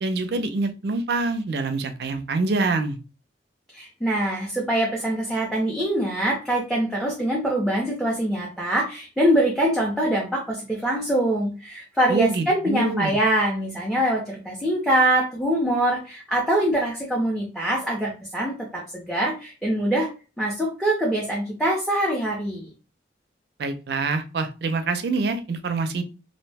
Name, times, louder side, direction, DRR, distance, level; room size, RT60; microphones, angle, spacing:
voice 1, 0.0-3.0 12.1-13.1 23.6-26.0, right 3 dB, 60° right, 9 dB, 0.4 m, -25 dB
voice 2, 3.7-20.1 20.4-22.7, right 1 dB, ahead, -3 dB, 0.5 m, -24 dB
2.5 x 2.0 x 3.3 m, 0.33 s
head